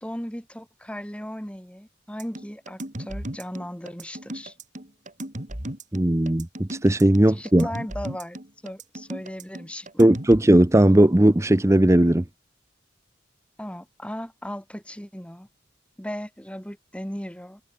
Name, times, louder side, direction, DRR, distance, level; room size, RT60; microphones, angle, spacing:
voice 1, 0.0-4.5 7.3-8.4 8.6-10.1 13.6-15.5 16.0-17.6, equal, 5° left, 3.3 m, -36 dB
sound 1, 2.2-10.4, right 1 dB, 40° right, 4.8 m, -36 dB
voice 2, 5.9-7.7 10.0-12.2, right 1 dB, 15° right, 0.7 m, -17 dB
head